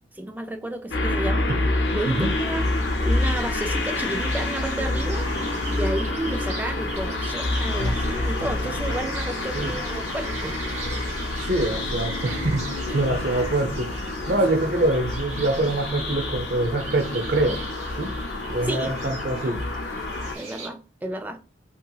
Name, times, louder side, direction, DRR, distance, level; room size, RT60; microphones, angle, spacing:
voice 1, 0.2-1.5 1.9-5.3 5.7-10.9 18.6-19.1 20.3-21.4, right 1 dB, 10° right, 0.3 m, -32 dB
sound 1, 0.9-20.4, left 2 dB, 75° left, 0.6 m, -28 dB
sound 2, 1.7-20.7, right 3 dB, 40° right, 0.9 m, -40 dB
sound 3, 4.0-13.1, equal, 30° left, 1.4 m, -43 dB
voice 2, 11.4-12.6 12.9-13.9 14.3-17.6 18.0-18.1 18.5-19.6, right 2 dB, 60° right, 0.7 m, -24 dB
2.8 x 2.7 x 2.3 m
head